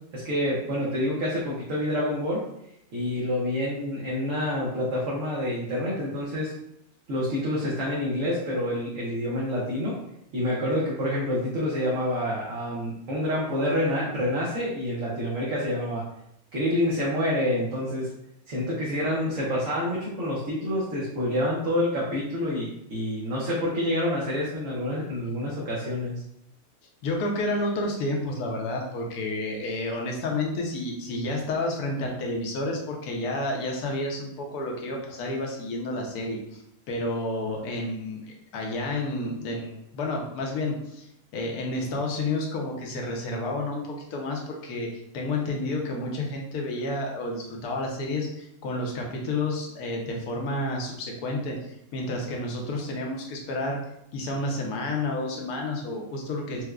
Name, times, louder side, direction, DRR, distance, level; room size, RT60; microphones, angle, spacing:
voice 1, 0.1-2.5 2.9-6.5 7.1-10.0 10.3-16.0 16.5-18.1 18.5-26.2, left 1 dB, 65° right, -6 dB, 1.0 m, -27 dB
voice 2, 27.0-36.6 36.9-41.1 41.3-53.8 54.1-56.6, left 2 dB, 80° left, 0 dB, 1.2 m, -30 dB
4.6 x 2.1 x 2.3 m, 0.78 s
omnidirectional pair, 1.6 m